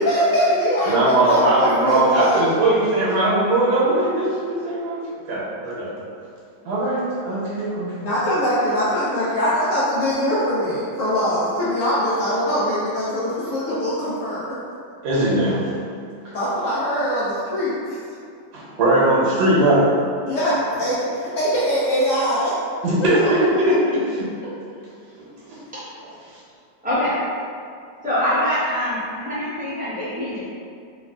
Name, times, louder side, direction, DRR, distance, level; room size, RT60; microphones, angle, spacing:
voice 1, 0.0-2.4 8.0-14.4 16.3-18.0 20.2-22.5, equal, 80° left, -9 dB, 0.7 m, -22 dB
voice 2, 0.8-5.0 5.3-5.9 6.6-8.1 15.0-15.7 16.2-16.3 18.5-19.9 22.8-24.3 25.5-25.6, right 1 dB, 70° right, -8 dB, 1.2 m, -19 dB
voice 3, 28.0-30.6, left 1 dB, 10° right, -13 dB, 0.5 m, -24 dB
3.1 x 2.3 x 2.3 m, 2.4 s
omnidirectional pair, 1.9 m